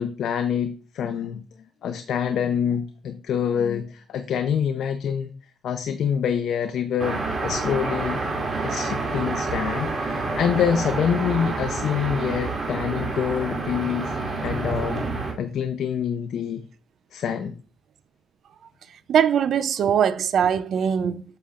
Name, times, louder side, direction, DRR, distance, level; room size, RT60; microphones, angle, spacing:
voice 1, 0.0-1.4 1.8-5.3 5.6-8.2 8.6-14.1 14.4-15.1 15.4-16.6 17.1-17.6, left 8 dB, 70° left, 0.7 m, -26 dB
sound 1, 7.0-15.3, right 3 dB, 40° right, 2.7 m, -28 dB
voice 2, 19.1-21.2, right 8 dB, 65° right, 0.6 m, -21 dB
8.2 x 6.8 x 2.5 m
cardioid pair, 90°, 0 cm